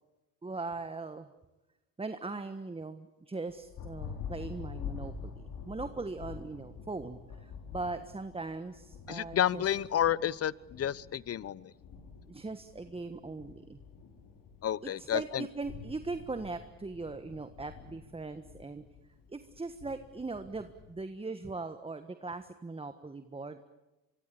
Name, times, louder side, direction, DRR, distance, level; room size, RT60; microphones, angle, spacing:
voice 1, 0.4-1.3 2.0-9.6 12.3-13.8 14.8-18.8 19.3-23.7, right 3 dB, 15° right, 9 dB, 1.4 m, -40 dB
Thunder, 3.5-21.0, left 6 dB, 60° left, 4.9 m, -47 dB
voice 2, 9.1-11.7 14.6-15.5, left 10 dB, 40° left, 22 dB, 0.9 m, -30 dB
25.0 x 24.0 x 8.6 m, 1.0 s
supercardioid pair, 75°, 38 cm